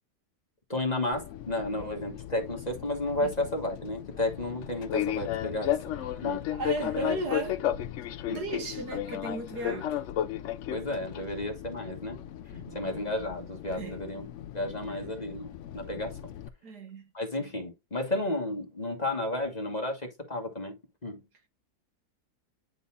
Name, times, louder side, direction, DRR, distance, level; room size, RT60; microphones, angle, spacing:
voice 1, 0.7-6.5 7.0-7.2 8.3-8.4 9.7-9.8 10.7-12.2 12.7-14.3 14.5-15.5 15.7-16.2 17.1-20.7 21.0-21.2, left 1 dB, 25° left, 1.5 m, -32 dB
Fixed-wing aircraft airplane, 1.1-16.5, left 11 dB, 65° left, 0.7 m, -35 dB
voice 2, 6.5-7.7 8.3-10.0 12.5-12.8 13.7-14.0 14.9-15.3 16.6-17.1, right 2 dB, 80° right, 2.2 m, -36 dB
9.6 x 4.0 x 2.6 m
omnidirectional pair, 1.7 m